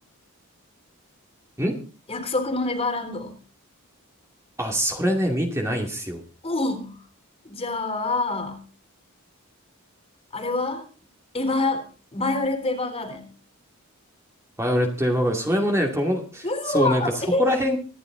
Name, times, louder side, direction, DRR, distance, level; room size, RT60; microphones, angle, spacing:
voice 1, 2.1-3.4 6.4-7.0 7.5-8.6 10.3-10.8 11.3-11.8 12.1-13.2 16.4-17.4, left 2 dB, 25° left, 6 dB, 3.6 m, -26 dB
voice 2, 4.6-6.2 14.6-17.0 17.4-17.8, equal, 15° right, 1 dB, 2.4 m, -23 dB
25.5 x 11.0 x 3.8 m, 0.35 s
head